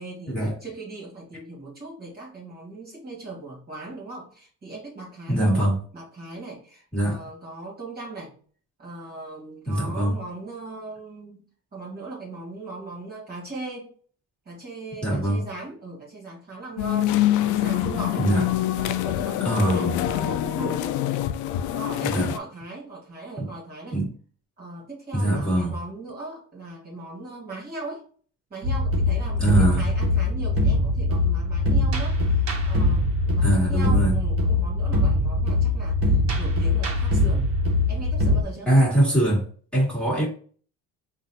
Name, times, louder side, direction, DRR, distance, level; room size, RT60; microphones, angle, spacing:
voice 1, 0.0-8.4 8.8-11.4 11.7-13.9 14.5-18.3 18.7-21.0 21.7-24.0 24.6-28.0 28.5-37.5 37.9-38.7, right 2 dB, 30° right, 1.9 m, -38 dB
voice 2, 5.3-5.7 6.9-7.2 9.7-10.2 15.0-15.4 18.2-18.5 19.4-20.0 22.0-22.3 23.4-23.5 23.9-24.1 25.1-25.8 29.4-29.9 33.4-34.1 38.7-39.5 39.7-40.3, right 1 dB, 5° left, 2.0 m, -22 dB
sound 1, 16.8-22.4, left 13 dB, 75° left, 0.5 m, -25 dB
sound 2, 28.6-38.4, left 2 dB, 45° right, 1.2 m, -22 dB
4.0 x 2.7 x 3.9 m
cardioid pair, 120°, 31 cm